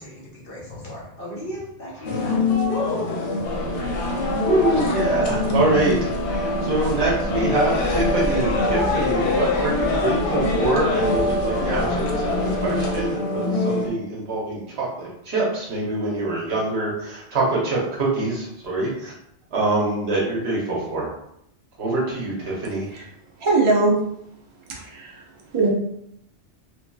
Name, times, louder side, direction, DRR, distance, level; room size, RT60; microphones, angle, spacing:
voice 1, 0.0-3.2, left 1 dB, 55° left, -5 dB, 1.0 m, -34 dB
sound 1, 2.1-13.9, left 2 dB, 90° left, 0.9 m, -24 dB
sound 2, 3.4-13.1, equal, 35° left, 0.9 m, -33 dB
voice 2, 4.4-6.1 6.6-19.1 19.5-21.1 21.8-22.9, right 2 dB, 65° right, -4 dB, 1.0 m, -25 dB
voice 3, 23.4-24.0 24.7-25.7, right 3 dB, 35° right, -2 dB, 0.5 m, -21 dB
3.0 x 2.7 x 2.2 m, 0.76 s
omnidirectional pair, 1.2 m